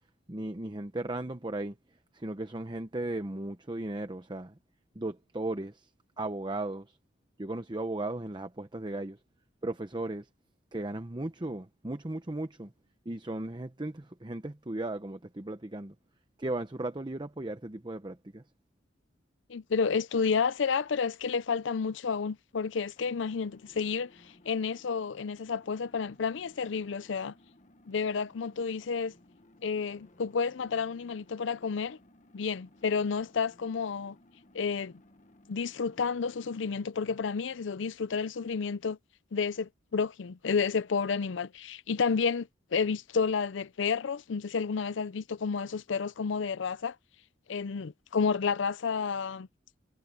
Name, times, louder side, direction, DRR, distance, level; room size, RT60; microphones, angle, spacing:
voice 1, 0.3-1.8 2.1-4.6 4.9-5.9 6.2-7.0 7.4-9.2 9.6-10.3 10.7-12.7 13.0-15.9 16.4-18.4, right 2 dB, 25° right, 0.8 m, -36 dB
voice 2, 19.5-27.3 27.9-29.1 29.6-32.0 32.3-34.2 34.5-34.9 35.5-39.0 39.3-47.0 47.5-49.5, left 5 dB, 80° left, 0.5 m, -31 dB
sound 1, 23.0-36.7, left 1 dB, 40° left, 1.4 m, -60 dB
head